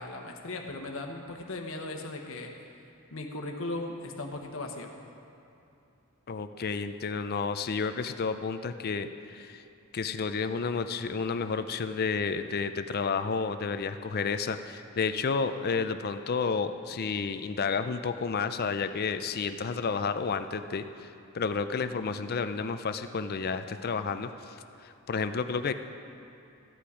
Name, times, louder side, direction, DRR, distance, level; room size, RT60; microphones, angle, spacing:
voice 1, 0.0-2.5 3.1-4.9, left 2 dB, 65° left, 2 dB, 1.1 m, -37 dB
voice 2, 6.3-9.6 9.9-21.1 21.3-24.5 24.8-25.7, left 5 dB, 45° left, 10 dB, 0.5 m, -31 dB
14.0 x 8.4 x 5.0 m, 2.7 s
head